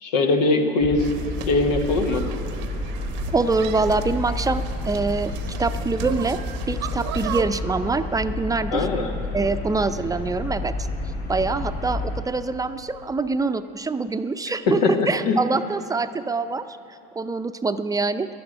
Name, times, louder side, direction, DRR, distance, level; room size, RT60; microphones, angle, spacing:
voice 1, 0.0-1.1 1.4-2.2 8.7-9.1 14.7-15.4, left 3 dB, 90° left, 5 dB, 1.3 m, -21 dB
sound 1, 0.8-12.2, left 2 dB, 50° left, 3.5 m, -30 dB
sound 2, 1.0-7.4, right 10 dB, 80° right, 0.9 m, -35 dB
voice 2, 3.3-5.3 5.6-6.4 6.7-8.9 9.3-10.7 11.3-16.6 17.2-18.3, right 3 dB, 15° right, 9 dB, 0.5 m, -24 dB
11.5 x 10.5 x 8.9 m, 2.9 s
supercardioid pair, 85°, 21 cm